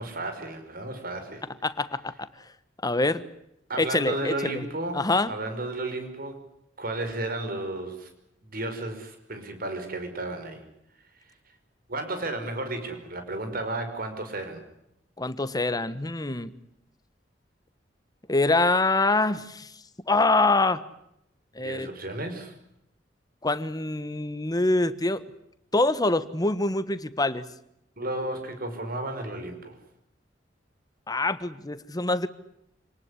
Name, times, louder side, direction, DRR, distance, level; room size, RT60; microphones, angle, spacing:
voice 1, 0.0-1.5 3.7-6.4 6.8-8.1 8.4-10.6 11.9-14.6 21.6-22.5 28.0-29.8, right 2 dB, 55° right, 7 dB, 5.5 m, -33 dB
voice 2, 1.6-2.3 2.8-3.2 3.8-4.7 4.9-5.3 15.2-16.5 18.3-19.7 20.1-20.8 21.5-21.9 23.4-25.2 25.7-27.4 31.1-32.3, left 2 dB, 20° left, 13 dB, 1.3 m, -25 dB
27.0 x 19.0 x 9.8 m, 0.79 s
head